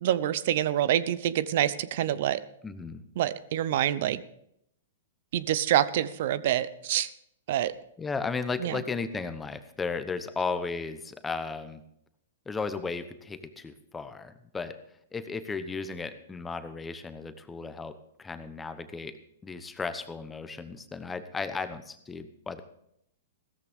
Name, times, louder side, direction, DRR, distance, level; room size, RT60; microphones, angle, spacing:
voice 1, 0.0-2.4 3.2-4.2 5.3-7.1 7.5-7.7 8.6-8.7, right 11 dB, 60° right, 17 dB, 0.8 m, -26 dB
voice 2, 2.6-3.0 8.0-11.8 12.5-14.8 15.1-22.6, left 4 dB, 10° left, 10 dB, 1.0 m, -35 dB
16.0 x 14.0 x 3.6 m, 0.74 s
hypercardioid pair, 130°, 0 cm